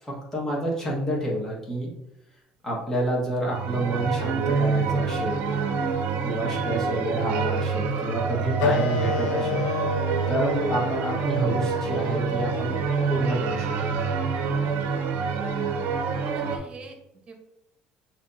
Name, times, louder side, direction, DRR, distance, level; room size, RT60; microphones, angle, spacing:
voice 1, 0.0-1.9 2.6-5.5 6.2-9.7 10.3-12.8 13.1-13.7, right 1 dB, 15° left, -4 dB, 1.6 m, -28 dB
sound 1, 3.5-16.6, right 5 dB, 70° right, 0.7 m, -27 dB
Wind instrument woodwind instrument, 8.6-13.7, left 5 dB, 85° left, 0.5 m, -31 dB
voice 2, 14.5-15.0 16.2-17.0 17.3-17.4, right 3 dB, 35° right, 4 dB, 1.1 m, -45 dB
6.0 x 3.0 x 2.7 m, 0.85 s
cardioid pair, 100°, 3 cm